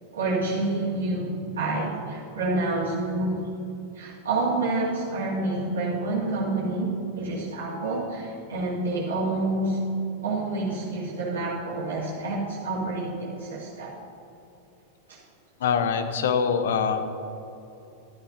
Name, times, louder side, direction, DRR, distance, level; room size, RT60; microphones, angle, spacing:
voice 1, 0.1-3.4 4.0-9.8 10.2-13.9 15.1-15.2, right 2 dB, 65° right, -7 dB, 2.1 m, -28 dB
voice 2, 15.6-17.0, left 6 dB, 60° left, 9 dB, 0.7 m, -24 dB
12.5 x 12.5 x 2.7 m, 2.8 s
figure-of-eight pair, 90°, 0 cm